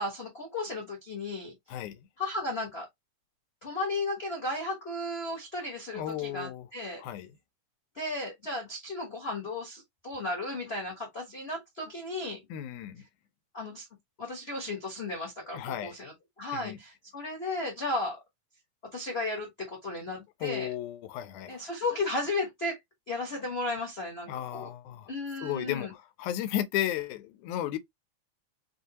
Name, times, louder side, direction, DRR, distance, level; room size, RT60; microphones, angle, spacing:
voice 1, 0.0-1.5 2.2-2.9 3.6-7.0 8.0-12.4 13.5-13.8 14.2-18.2 18.9-20.7 21.5-22.8 23.1-24.7 25.1-25.9, left 2 dB, 50° left, 0.7 m, -34 dB
voice 2, 1.7-2.0 5.9-6.7 7.0-7.3 12.5-13.0 15.5-16.0 16.5-16.8 20.4-21.7 24.3-27.8, left 12 dB, 90° left, 2.1 m, -34 dB
5.4 x 2.7 x 2.8 m
omnidirectional pair, 3.4 m